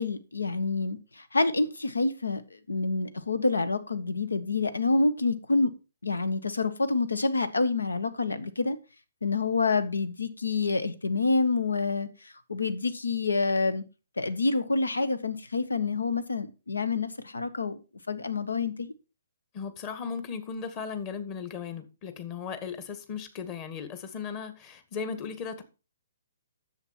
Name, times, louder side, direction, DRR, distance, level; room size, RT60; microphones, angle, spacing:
voice 1, 0.0-2.4 2.7-5.7 6.0-8.8 9.2-12.1 12.5-13.8 14.2-17.8 18.1-18.9, left 3 dB, 75° left, 1.4 m, -27 dB
voice 2, 19.5-25.6, left 6 dB, 30° left, 2.0 m, -36 dB
10.5 x 7.8 x 4.4 m
figure-of-eight pair, 125°, 0 cm